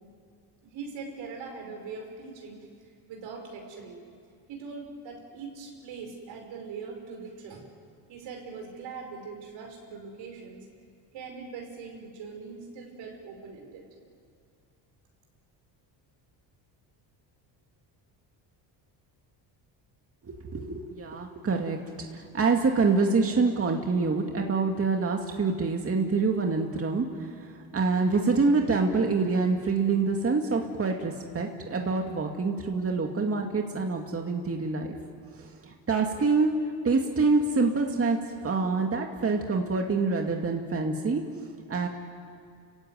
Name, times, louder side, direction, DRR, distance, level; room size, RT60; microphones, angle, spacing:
voice 1, 0.7-2.6 3.1-4.0 4.5-7.7 8.1-10.7 11.1-13.9, right 5 dB, 75° right, 2 dB, 5.6 m, -41 dB
voice 2, 20.2-34.9 35.3-38.2 38.4-41.2 41.7-41.9, right 4 dB, 30° right, 2 dB, 2.2 m, -26 dB
30.0 x 16.0 x 9.3 m, 2.2 s
cardioid pair, 95°, 45 cm